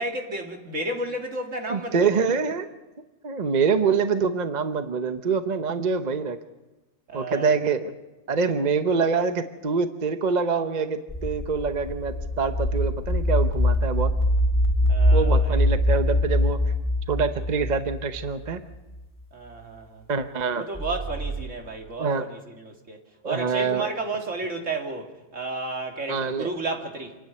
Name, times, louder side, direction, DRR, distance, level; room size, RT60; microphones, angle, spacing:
voice 1, 0.0-2.2 7.1-7.5 14.9-15.7 19.3-20.0 20.5-23.0 23.2-27.2, right 2 dB, 65° right, 2.7 m, -32 dB
voice 2, 1.7-2.7 3.2-6.4 7.1-7.9 8.3-14.1 15.1-16.6 17.1-18.6 20.1-20.7 22.0-22.2 23.2-23.9 26.1-26.5, right 5 dB, 40° right, 0.9 m, -25 dB
sound 1, 11.1-18.6 20.7-21.5, left 1 dB, 15° left, 2.9 m, -23 dB
26.5 x 10.0 x 9.5 m
omnidirectional pair, 1.4 m